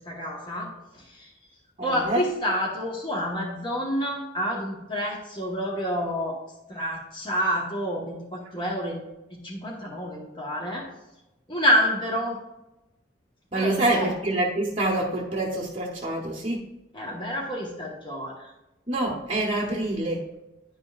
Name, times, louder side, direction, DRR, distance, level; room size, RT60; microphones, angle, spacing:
voice 1, 0.1-1.3 1.8-6.4 6.7-9.0 9.3-10.9 11.5-12.4 13.6-14.1 16.9-18.5, equal, 25° left, -3 dB, 1.1 m, -28 dB
voice 2, 1.8-2.2 13.5-16.7 18.9-20.3, right 2 dB, 30° right, -2 dB, 0.9 m, -26 dB
10.5 x 5.2 x 2.4 m, 0.96 s
head